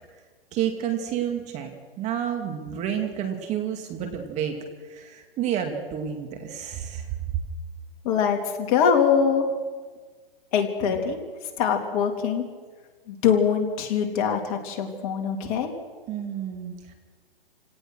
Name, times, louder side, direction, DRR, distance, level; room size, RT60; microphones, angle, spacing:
voice 1, 0.5-1.7 2.0-4.5 4.8-7.1 10.9-11.0 16.1-16.9, right 9 dB, 25° right, 5 dB, 2.4 m, -30 dB
voice 2, 8.0-9.4 10.5-11.2 11.6-12.4 13.1-15.7, left 7 dB, 35° left, 3 dB, 3.1 m, -23 dB
28.0 x 18.0 x 6.3 m, 1.5 s
hypercardioid pair, 140°, 30 cm